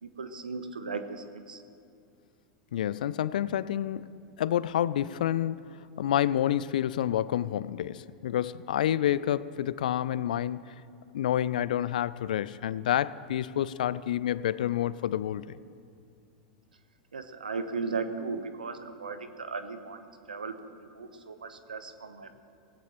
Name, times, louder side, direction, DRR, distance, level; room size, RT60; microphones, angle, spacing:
voice 1, 0.0-1.6 17.1-22.4, right 4 dB, 80° right, 10 dB, 0.9 m, -37 dB
voice 2, 2.7-4.0 4.4-5.6 6.0-10.7 11.1-15.5, left 11 dB, 70° left, 18 dB, 0.4 m, -28 dB
18.5 x 15.5 x 3.1 m, 2.3 s
figure-of-eight pair, 90°, 5 cm